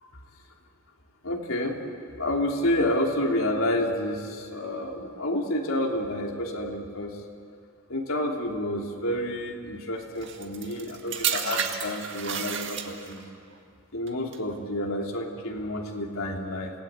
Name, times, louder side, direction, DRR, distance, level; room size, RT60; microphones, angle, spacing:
voice 1, 1.2-1.8 2.2-7.2 7.9-13.2 13.9-16.7, left 1 dB, 75° left, 1 dB, 3.2 m, -29 dB
sound 1, 10.2-13.3 14.1-14.4, right 7 dB, 55° right, 1.8 m, -31 dB
28.5 x 18.0 x 8.9 m, 2.3 s
head